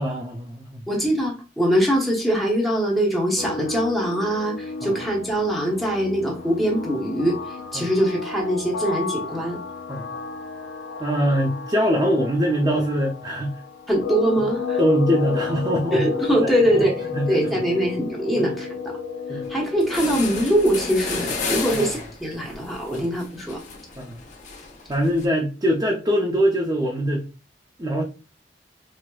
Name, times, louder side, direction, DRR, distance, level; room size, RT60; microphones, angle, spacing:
voice 1, 0.0-0.8 4.8-4.9 7.7-7.9 9.9-10.1 11.0-13.6 14.4-14.5 14.8-16.1 16.4-16.9 17.1-17.6 18.4-18.5 19.3-19.5 21.7-21.9 22.9-23.1 24.0-24.2 24.9-27.3 27.8-28.0, equal, 20° right, 0.4 m, -23 dB
voice 2, 0.9-7.4 7.7-9.6 13.9-14.8 15.9-18.7 19.5-23.6, equal, ahead, 0.8 m, -22 dB
sound 1, 3.4-21.0, left 5 dB, 80° left, 0.4 m, -32 dB
sound 2, 19.4-19.5 19.8-25.2, left 4 dB, 45° left, 0.7 m, -32 dB
4.5 x 2.0 x 2.2 m
head